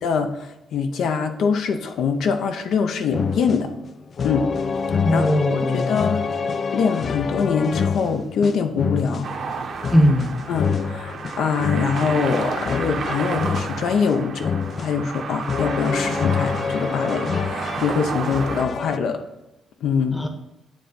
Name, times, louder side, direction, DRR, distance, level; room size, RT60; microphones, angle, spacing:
voice 1, 0.0-3.7 4.2-4.5 5.1-6.3 6.7-9.3 10.5-14.5 14.8-19.2 19.8-20.2, left 6 dB, 75° left, 6 dB, 0.7 m, -23 dB
sound 1, 3.1-19.0, left 5 dB, 40° left, 0.3 m, -27 dB
voice 2, 5.0-5.9 9.9-10.4 20.1-20.3, equal, 10° left, 5 dB, 0.9 m, -19 dB
sound 2, 9.2-18.7, right 5 dB, 55° right, 0.9 m, -31 dB
9.1 x 3.4 x 5.6 m, 1.0 s
cardioid pair, 145°, 0 cm